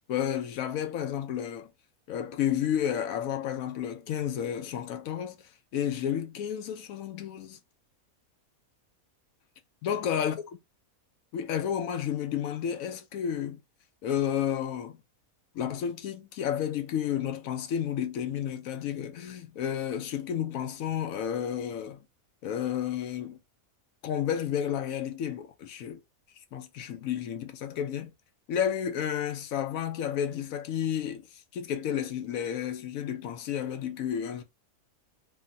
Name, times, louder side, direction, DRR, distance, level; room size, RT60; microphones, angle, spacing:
voice 1, 0.0-1.7 2.1-7.6 9.8-10.4 11.3-13.6 14.0-15.0 15.5-22.0 22.4-23.4 24.0-26.0 26.5-28.1 28.5-34.4, left 9 dB, 75° left, 1.0 m, -31 dB
3.6 x 2.1 x 2.5 m
omnidirectional pair, 1.5 m